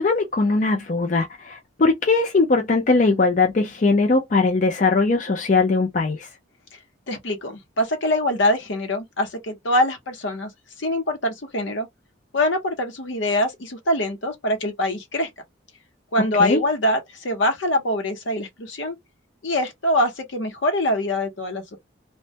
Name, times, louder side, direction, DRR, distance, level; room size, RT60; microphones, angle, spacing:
voice 1, 0.0-6.3 16.4-16.6, left 3 dB, 40° left, 0.4 m, -20 dB
voice 2, 7.1-10.5 10.8-11.9 12.3-15.3 16.1-19.0 19.4-21.8, left 1 dB, 75° left, 0.8 m, -24 dB
2.2 x 2.1 x 2.7 m
head